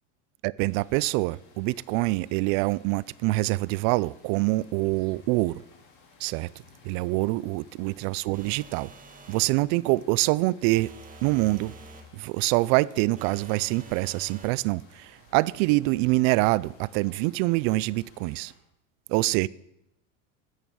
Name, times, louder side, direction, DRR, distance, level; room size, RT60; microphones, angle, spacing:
voice 1, 0.4-5.6 6.2-6.5 6.8-8.9 9.3-10.9 11.2-11.7 12.1-18.5 19.1-19.5, right 21 dB, 55° right, 0.5 m, -25 dB
sound 1, 0.6-18.6, left 4 dB, 55° left, 4.6 m, -57 dB
sound 2, 8.3-9.6 10.7-12.1 13.2-14.6, right 3 dB, 20° right, 1.6 m, -47 dB
13.0 x 9.2 x 6.2 m
supercardioid pair, 125°, 38 cm